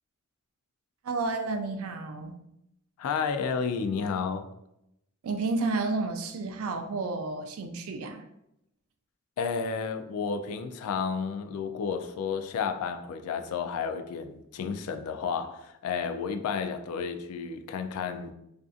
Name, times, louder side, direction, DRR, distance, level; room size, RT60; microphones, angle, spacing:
voice 1, 1.0-2.4 5.2-8.2, right 3 dB, 75° right, 0.4 m, -31 dB
voice 2, 3.0-4.5 9.4-18.3, left 6 dB, 90° left, 0.3 m, -31 dB
2.5 x 2.5 x 2.3 m
head